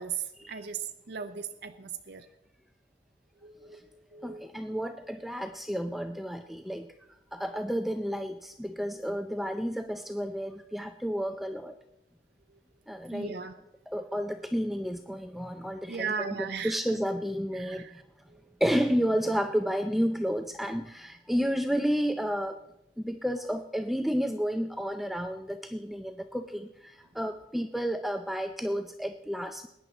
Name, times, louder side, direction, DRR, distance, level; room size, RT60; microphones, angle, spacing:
voice 1, 0.0-2.3 3.4-4.6 13.1-13.5 15.9-16.8 17.5-18.0 18.3-18.4, right 6 dB, 65° right, 7 dB, 0.6 m, -37 dB
voice 2, 4.2-6.9 7.3-11.8 12.9-13.3 13.9-18.0 18.6-22.6 23.0-29.7, equal, ahead, 7 dB, 0.5 m, -31 dB
20.5 x 10.0 x 4.0 m, 0.90 s
head